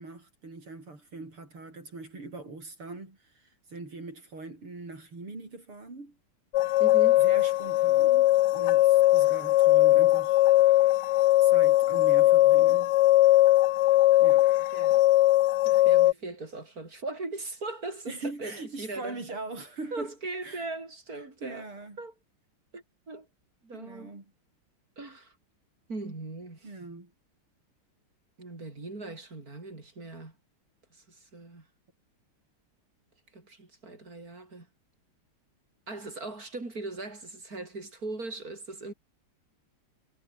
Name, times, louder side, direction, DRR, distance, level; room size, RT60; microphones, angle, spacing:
voice 1, 0.0-6.2 7.2-10.4 11.4-13.0 14.2-14.7 18.1-20.1 20.4-20.7 21.1-22.0 23.7-24.3 26.6-27.1, right 3 dB, 85° right, 7.5 m, -42 dB
sound 1, 6.5-16.1, left 16 dB, 80° left, 0.9 m, -20 dB
voice 2, 6.8-7.2 14.7-15.0 15.6-19.2 19.9-21.7 22.0-22.1 22.7-23.3 23.6-24.1 25.0-25.3 25.9-26.7 28.4-30.3 30.9-31.7 33.3-34.7 35.9-38.9, right 2 dB, 40° right, 5.2 m, -39 dB
omnidirectional pair, 2.3 m